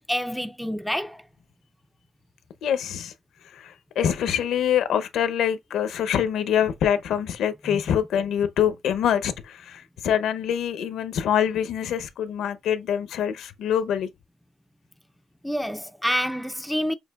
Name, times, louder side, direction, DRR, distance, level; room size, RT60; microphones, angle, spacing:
voice 1, 0.1-1.2 7.7-7.8 15.4-16.9, equal, ahead, 0.3 m, -27 dB
voice 2, 2.6-3.1 3.5-14.1, left 9 dB, 75° left, 0.7 m, -25 dB
6.4 x 2.8 x 2.3 m
cardioid pair, 125°, 0 cm